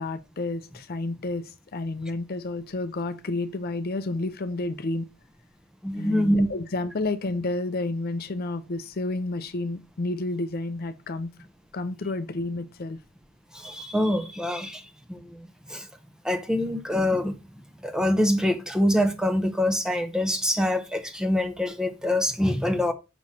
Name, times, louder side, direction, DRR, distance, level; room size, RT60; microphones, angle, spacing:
voice 1, 0.0-5.1 6.0-11.3 11.7-13.0, left 2 dB, 45° left, 0.5 m, -30 dB
voice 2, 5.8-6.5 13.5-14.8 15.1-15.4 15.7-15.9 16.2-17.3 17.8-22.9, left 1 dB, 5° right, 0.6 m, -25 dB
6.0 x 3.1 x 5.5 m
head